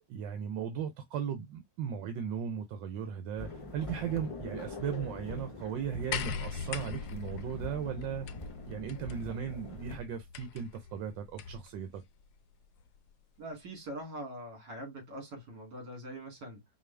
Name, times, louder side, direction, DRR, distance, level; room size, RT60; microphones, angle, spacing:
voice 1, 0.1-8.3 8.6-12.0, right 8 dB, 85° right, 1.4 m, -37 dB
sound 1, 3.4-10.0, left 2 dB, 40° left, 0.4 m, -44 dB
sound 2, 6.1-11.7 12.8-12.9, left 7 dB, 70° left, 1.1 m, -41 dB
voice 2, 13.4-16.6, right 1 dB, 70° right, 2.9 m, -43 dB
5.1 x 2.4 x 3.2 m
omnidirectional pair, 2.0 m